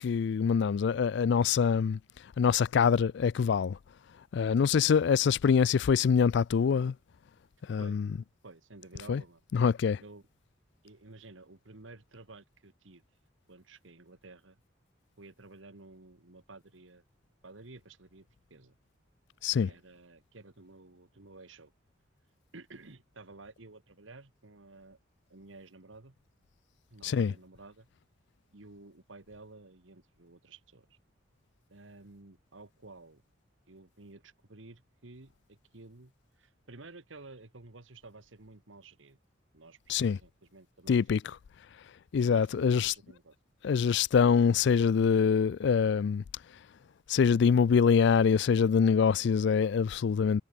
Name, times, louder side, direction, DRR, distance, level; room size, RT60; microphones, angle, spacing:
voice 1, 0.0-2.0 2.4-3.8 4.3-6.9 7.7-8.1 9.1-9.2 9.5-10.0 19.4-19.7 27.0-27.3 39.9-40.2 40.9-41.2 42.1-42.9 43.6-46.2 47.1-50.4, left 6 dB, 60° left, 0.3 m, -25 dB
voice 2, 8.4-9.4 10.0-10.3 10.8-13.0 13.5-14.6 15.2-17.0 17.4-18.8 19.6-21.7 22.5-25.0 25.3-26.2 26.9-27.9 28.5-31.0 31.7-33.2 33.7-39.2 39.5-41.4 42.2-43.4, right 3 dB, 75° right, 1.7 m, -52 dB
head